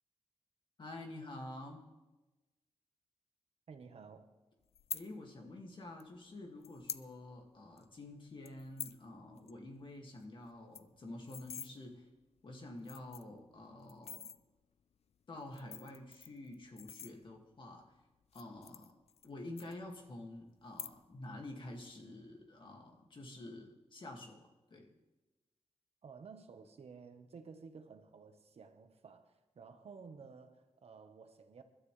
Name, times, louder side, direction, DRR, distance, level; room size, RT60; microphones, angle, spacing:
voice 1, 0.8-1.8 4.9-12.1 12.4-14.2 15.3-17.8 18.3-18.9 19.2-24.9, left 2 dB, 50° left, 2.2 m, -49 dB
voice 2, 3.7-4.3 26.0-31.6, right 5 dB, 70° right, 1.3 m, -54 dB
sound 1, 4.7-5.0 6.0-6.1 6.6-7.1 7.4-7.5 7.8-8.0 8.4-9.0 9.4-9.5 9.8-9.9 10.2-10.3 10.5-11.7 12.4-12.5 12.8-13.4 13.9-14.4 15.4-17.5 18.2-19.3 19.6-20.2 20.6-21.2 21.5-21.9, left 7 dB, 75° left, 0.5 m, -46 dB
28.0 x 12.5 x 3.3 m
wide cardioid pair, 135°, 11 cm